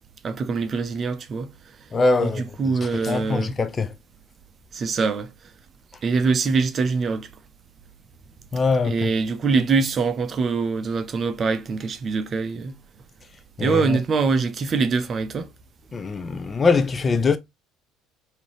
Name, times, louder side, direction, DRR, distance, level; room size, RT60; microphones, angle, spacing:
voice 1, 0.2-1.5 2.2-3.6 4.7-5.3 6.0-7.3 8.8-12.8 13.6-15.5, right 4 dB, 40° right, 0.6 m, -23 dB
voice 2, 1.9-3.9 8.5-9.1 13.6-14.0 15.9-17.4, left 4 dB, 30° left, 0.6 m, -23 dB
3.8 x 2.8 x 3.0 m
figure-of-eight pair, 60°, 0 cm